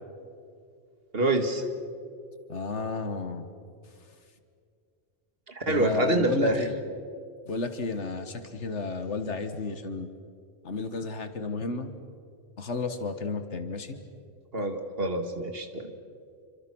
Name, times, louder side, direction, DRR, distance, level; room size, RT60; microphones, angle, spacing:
voice 1, 1.1-1.6 5.6-6.6 14.5-15.9, right 2 dB, 55° right, 6 dB, 2.3 m, -26 dB
voice 2, 2.5-3.5 5.7-6.8 7.5-10.1 10.6-11.9 12.6-14.0, left 3 dB, 75° left, 8 dB, 1.7 m, -32 dB
27.5 x 25.5 x 6.2 m, 2.3 s
omnidirectional pair, 1.2 m